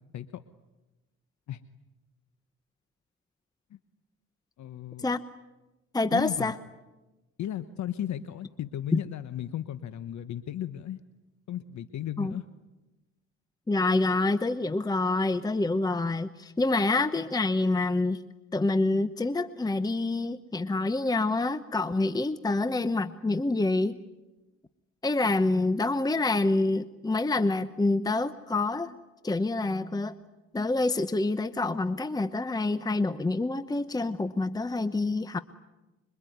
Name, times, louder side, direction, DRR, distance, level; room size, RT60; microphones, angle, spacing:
voice 1, 4.6-5.1 6.1-6.5 7.4-11.0 11.5-12.4, left 11 dB, 70° left, 12 dB, 1.1 m, -35 dB
voice 2, 5.9-6.5 8.9-9.0 12.2-12.3 13.7-18.2 18.5-24.0 25.0-29.0 29.2-30.1 30.5-35.4, left 2 dB, 15° left, 13 dB, 0.8 m, -27 dB
26.0 x 23.5 x 9.4 m, 1.1 s
cardioid pair, 90°, 30 cm